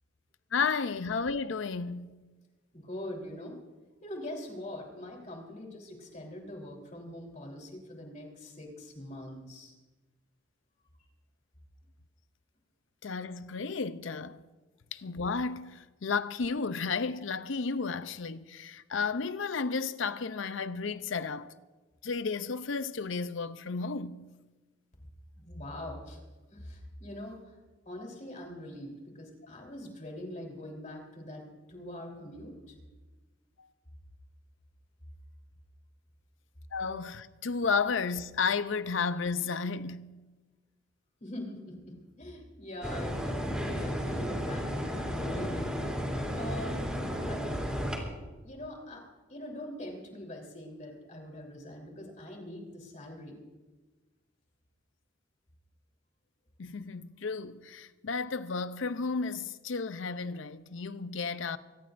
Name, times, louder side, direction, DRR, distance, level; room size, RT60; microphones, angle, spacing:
voice 1, 0.5-2.2 13.0-14.4 14.9-21.5 22.0-24.3 36.7-40.2 56.6-61.6, left 5 dB, 75° left, 0.6 m, -33 dB
voice 2, 2.7-3.6 4.0-9.7 25.3-26.2 26.5-27.6 27.9-32.8 41.2-46.0 46.3-46.9 47.3-47.5 48.4-49.0 49.3-53.4, left 1 dB, 40° left, 3.6 m, -43 dB
sound 1, 42.8-48.0, equal, 5° right, 3.1 m, -33 dB
24.0 x 18.5 x 2.6 m
head